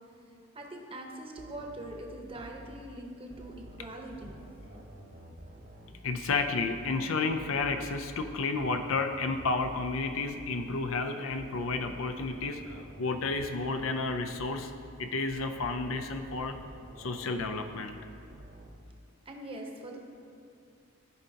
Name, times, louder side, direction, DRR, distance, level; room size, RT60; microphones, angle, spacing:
voice 1, 0.5-4.4 19.2-20.0, right 1 dB, 25° right, 1 dB, 0.9 m, -42 dB
sound 1, 1.4-2.8 3.3-6.0 6.3-6.8 7.3-10.8 11.3-14.0 14.3-14.8 15.3-18.0 18.3-18.8, right 1 dB, 50° right, 1.2 m, -49 dB
voice 2, 6.0-14.7 15.0-16.6 17.0-18.0, left 3 dB, 80° left, 7 dB, 0.5 m, -31 dB
14.5 x 5.1 x 2.8 m, 2.4 s
head